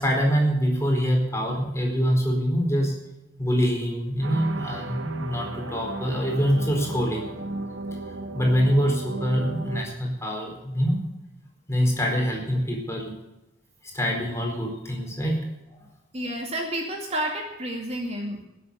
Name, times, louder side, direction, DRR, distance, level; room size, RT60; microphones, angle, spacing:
voice 1, 0.0-3.0 3.4-7.3 8.3-11.0 11.7-13.1 13.8-15.4 15.7-15.8, equal, 15° left, 0 dB, 4.5 m, -24 dB
sound 1, 4.2-9.8, right 2 dB, 80° right, 1.4 m, -35 dB
voice 2, 16.1-18.4, right 1 dB, 35° right, 1 dB, 2.2 m, -30 dB
19.0 x 8.5 x 6.9 m, 0.91 s
head